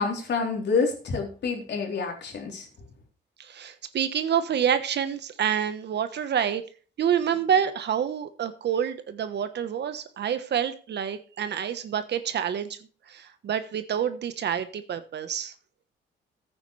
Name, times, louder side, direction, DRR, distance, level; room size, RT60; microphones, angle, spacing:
voice 1, 0.0-2.7, left 4 dB, 60° left, 3.8 m, -28 dB
voice 2, 3.4-6.6 7.0-12.8 13.1-15.5, right 8 dB, 60° right, 1.2 m, -27 dB
14.5 x 9.1 x 3.3 m
cardioid pair, 90°, 20 cm